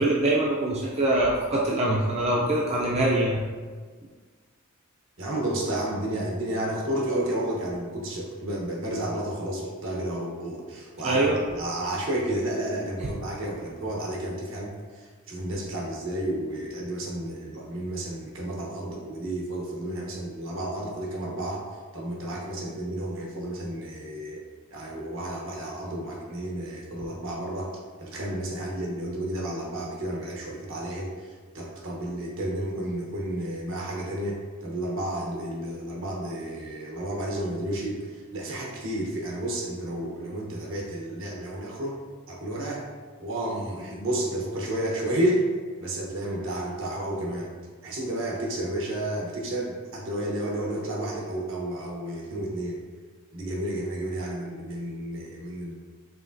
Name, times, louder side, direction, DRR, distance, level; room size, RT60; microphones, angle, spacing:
voice 1, 0.0-3.4 11.0-11.4, right 1 dB, 30° right, -3 dB, 0.4 m, -23 dB
voice 2, 5.2-21.6 21.9-24.4 24.7-27.7 28.0-42.0 42.3-42.8 43.2-45.5 45.8-47.5 47.8-52.8 53.3-55.7, right 1 dB, 70° right, -2 dB, 1.0 m, -31 dB
4.9 x 3.2 x 2.6 m, 1.5 s
head